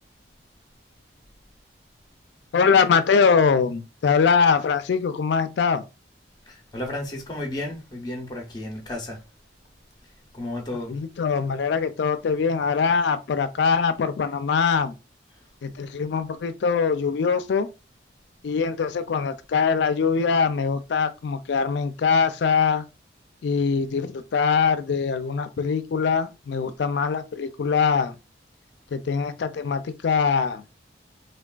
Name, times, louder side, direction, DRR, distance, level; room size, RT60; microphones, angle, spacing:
voice 1, 2.5-5.8 10.9-15.0 15.6-17.7 18.4-22.8 23.4-28.2 28.9-30.6, left 5 dB, 65° left, 0.4 m, -22 dB
voice 2, 6.5-9.2 10.3-10.9, left 1 dB, 20° left, 0.6 m, -33 dB
3.4 x 2.2 x 2.3 m
head